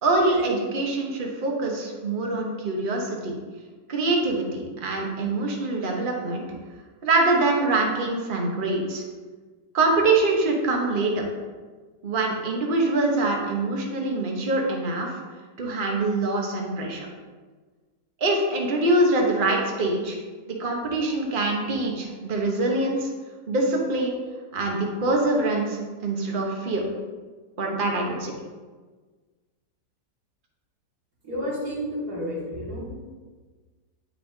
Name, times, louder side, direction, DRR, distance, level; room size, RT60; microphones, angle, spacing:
voice 1, 0.0-3.3 3.9-6.4 7.0-9.0 9.7-11.2 12.0-15.1 15.6-17.1 18.2-20.2 20.5-23.1 23.5-24.2 24.5-26.8 27.6-28.3, right 2 dB, 35° right, 0 dB, 1.0 m, -24 dB
voice 2, 31.2-32.9, equal, 60° right, -6 dB, 2.7 m, -31 dB
9.3 x 5.8 x 2.7 m, 1.4 s
omnidirectional pair, 1.9 m